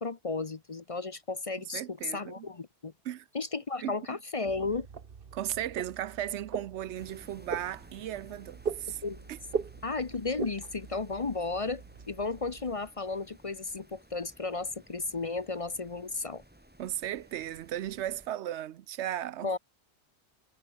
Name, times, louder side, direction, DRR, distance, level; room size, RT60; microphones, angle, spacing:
voice 1, 0.0-2.9 3.3-4.9 9.0-9.2 9.8-16.4 19.4-19.6, left 3 dB, 35° left, 0.7 m, -34 dB
voice 2, 1.7-2.5 3.0-3.3 3.8-4.0 5.3-9.0 9.3-9.4 16.8-19.5, right 12 dB, 85° right, 1.0 m, -36 dB
sound 1, 4.4-12.7, right 6 dB, 55° right, 1.3 m, -41 dB
sound 2, 7.0-18.3, right 1 dB, 10° right, 1.7 m, -57 dB
omnidirectional pair, 1.1 m